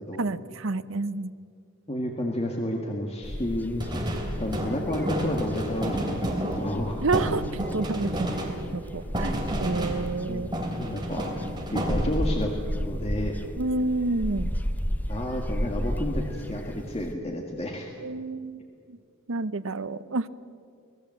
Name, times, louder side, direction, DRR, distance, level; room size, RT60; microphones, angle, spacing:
voice 1, 0.2-1.3 7.0-8.3 8.7-10.5 13.6-14.5 18.0-18.6 18.9-19.0 19.3-20.3, right 3 dB, 65° right, 14 dB, 0.7 m, -29 dB
voice 2, 1.9-4.0 4.4-7.0 10.3-10.4 10.8-11.3 11.7-13.3 15.1-17.9, left 1 dB, 30° left, 1 dB, 1.9 m, -31 dB
sound 1, 3.2-17.2, equal, 10° left, 0.8 m, -34 dB
sound 2, 3.8-10.3 10.5-12.4, right 1 dB, 20° right, 3.2 m, -31 dB
25.0 x 19.0 x 7.7 m, 2.2 s
head